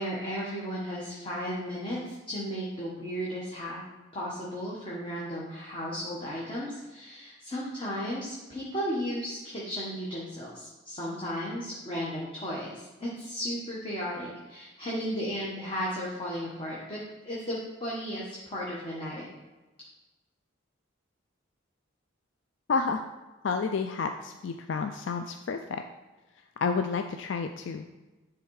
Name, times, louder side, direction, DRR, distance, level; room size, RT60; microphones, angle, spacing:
voice 1, 0.0-3.8 4.1-19.3, equal, 25° left, -5 dB, 1.3 m, -35 dB
voice 2, 22.7-23.0 23.4-25.8 26.6-27.8, left 5 dB, 65° left, 6 dB, 0.4 m, -30 dB
10.5 x 3.7 x 4.7 m, 1.1 s
head